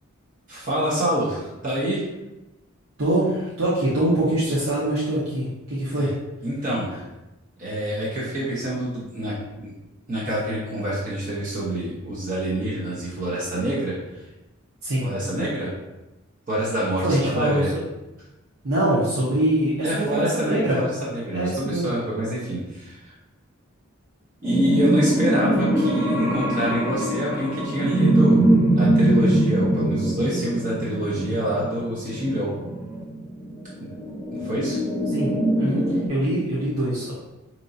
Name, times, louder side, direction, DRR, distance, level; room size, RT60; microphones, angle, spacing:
voice 1, 0.5-2.0 6.0-6.1 6.4-6.9 7.6-9.7 10.1-14.3 15.0-15.7 16.5-17.7 19.8-23.1 24.4-28.5 28.7-32.5 33.8-33.9 34.3-34.8, right 1 dB, 40° right, -7 dB, 1.0 m, -26 dB
voice 2, 3.0-6.1 14.8-15.1 17.0-17.6 18.6-20.8 21.3-21.9 35.1-37.1, right 1 dB, 85° right, -8 dB, 0.9 m, -23 dB
sound 1, 24.4-36.1, right 1 dB, 15° right, 0.7 m, -22 dB
5.3 x 3.0 x 2.6 m, 1.0 s
head